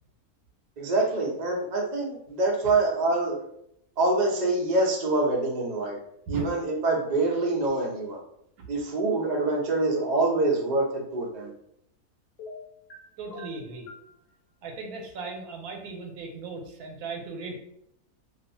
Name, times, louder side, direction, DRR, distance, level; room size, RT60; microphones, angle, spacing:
voice 1, 0.8-3.4 4.0-6.0 6.3-8.2 8.7-11.5, right 2 dB, 65° right, -1 dB, 0.4 m, -25 dB
sound 1, 10.0-10.3 12.4-13.0 13.3-14.1, left 2 dB, 60° left, 0.7 m, -42 dB
voice 2, 13.2-13.9 14.6-17.6, right 3 dB, 80° right, 2 dB, 1.1 m, -37 dB
2.5 x 2.4 x 2.6 m, 0.75 s
omnidirectional pair, 1.6 m